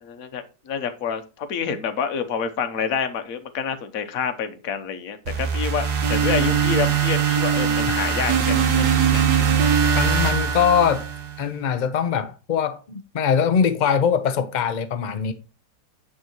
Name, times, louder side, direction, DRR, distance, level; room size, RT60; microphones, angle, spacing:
voice 1, 0.0-9.2, left 6 dB, 55° left, 1.3 m, -28 dB
sound 1, 5.3-11.4, right 7 dB, 65° right, 1.6 m, -21 dB
voice 2, 9.9-11.0 11.4-15.3, left 7 dB, 70° left, 0.4 m, -22 dB
9.4 x 3.7 x 4.4 m
omnidirectional pair, 1.9 m